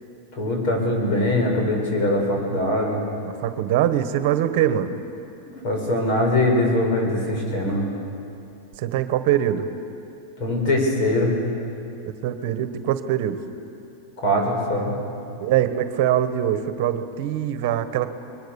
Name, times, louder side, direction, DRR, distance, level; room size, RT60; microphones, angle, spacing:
voice 1, 0.3-3.0 5.6-7.9 10.4-11.3 14.2-15.0, left 1 dB, 50° left, 1 dB, 7.4 m, -22 dB
voice 2, 3.2-5.0 8.8-9.7 12.2-13.4 15.4-18.1, right 11 dB, 55° right, 10 dB, 1.3 m, -23 dB
28.5 x 22.0 x 7.2 m, 2.7 s
supercardioid pair, 150°, 0 cm